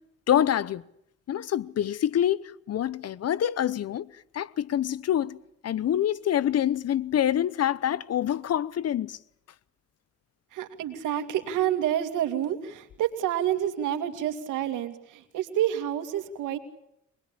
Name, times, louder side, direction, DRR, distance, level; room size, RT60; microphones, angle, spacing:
voice 1, 0.3-0.8 1.3-4.1 4.3-5.4 5.6-9.2, left 10 dB, 55° left, 0.9 m, -26 dB
voice 2, 10.5-16.6, right 11 dB, 90° right, 2.5 m, -28 dB
24.0 x 20.5 x 8.6 m
cardioid pair, 90°, 30 cm